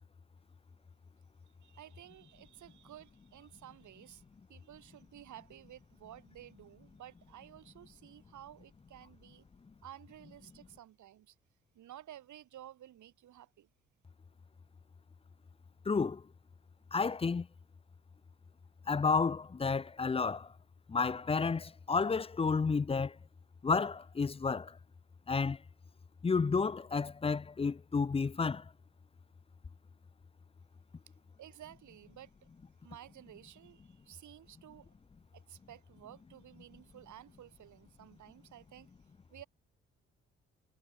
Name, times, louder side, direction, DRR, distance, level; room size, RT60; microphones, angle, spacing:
voice 1, 1.6-4.2 4.5-9.4 9.8-11.3 11.7-13.7 31.4-32.3 32.8-34.9 35.3-38.9 39.3-39.5, right 12 dB, 65° right, 5.1 m, -53 dB
voice 2, 15.9-16.2 16.9-17.5 18.9-20.5 20.9-23.1 23.6-24.7 25.3-25.6 26.2-28.6, left 4 dB, 20° left, 0.5 m, -31 dB
hypercardioid pair, 50°, 31 cm